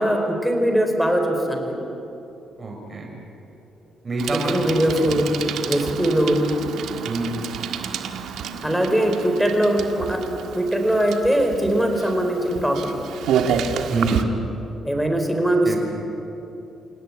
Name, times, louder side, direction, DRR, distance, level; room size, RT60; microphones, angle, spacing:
voice 1, 0.0-1.9 4.3-5.3 5.6-6.4 8.6-10.2 10.5-13.1 14.8-15.8, right 1 dB, ahead, 4 dB, 4.9 m, -21 dB
voice 2, 2.6-3.1 4.0-4.9 7.0-7.3 13.8-14.2 15.6-15.8, right 2 dB, 30° right, 0 dB, 6.5 m, -26 dB
Bicycle, 4.2-14.2, right 7 dB, 80° right, 1.7 m, -29 dB
28.0 x 17.5 x 10.0 m, 2.9 s
cardioid pair, 90°, 0 cm